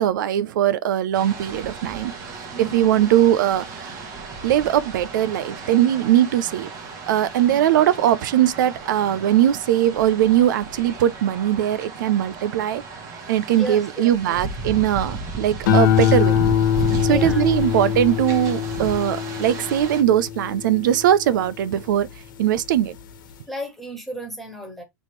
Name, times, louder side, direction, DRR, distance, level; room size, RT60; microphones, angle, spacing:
voice 1, 0.0-2.1 2.6-4.0 4.4-6.7 7.1-12.8 13.3-16.4 17.0-22.1 22.4-23.0, right 11 dB, 70° right, 0.5 m, -20 dB
sound 1, 1.1-20.0, right 4 dB, 30° right, 1.2 m, -34 dB
voice 2, 2.5-3.0 7.5-7.6 13.5-14.4 16.8-17.4 23.5-24.8, equal, ahead, 1.5 m, -34 dB
sound 2, 15.6-22.2 22.6-23.1, left 10 dB, 75° left, 1.3 m, -23 dB
4.0 x 3.7 x 3.1 m
supercardioid pair, 145°, 11 cm